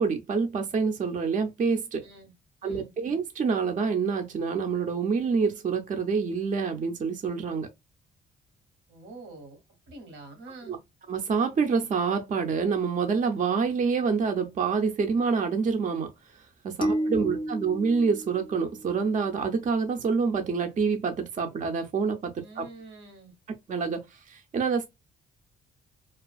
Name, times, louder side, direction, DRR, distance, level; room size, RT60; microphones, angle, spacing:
voice 1, 0.0-2.0 2.6-7.7 10.7-10.8 11.1-22.6 23.7-24.9, right 5 dB, 40° right, 0.5 m, -27 dB
voice 2, 2.0-2.3 2.6-2.9 8.9-10.8 16.9-17.5 22.4-23.3, right 2 dB, 80° right, 1.2 m, -47 dB
sound 1, 16.8-19.2, right 1 dB, 25° left, 0.4 m, -31 dB
2.4 x 2.4 x 2.3 m
cardioid pair, 90°, 20 cm